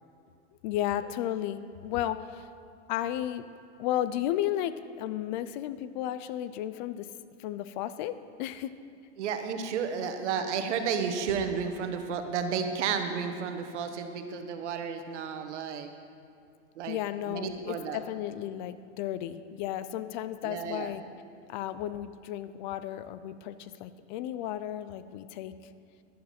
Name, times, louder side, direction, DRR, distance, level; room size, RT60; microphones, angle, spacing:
voice 1, 0.6-2.5 2.9-3.5 3.8-7.1 7.4-8.7 16.9-21.0 21.5-25.7, left 12 dB, 45° left, 13 dB, 0.4 m, -33 dB
voice 2, 9.2-15.9 16.8-17.0 17.3-18.0 20.4-20.9, right 6 dB, 80° right, 7 dB, 1.2 m, -32 dB
11.0 x 10.5 x 4.3 m, 2.4 s
supercardioid pair, 140°, 34 cm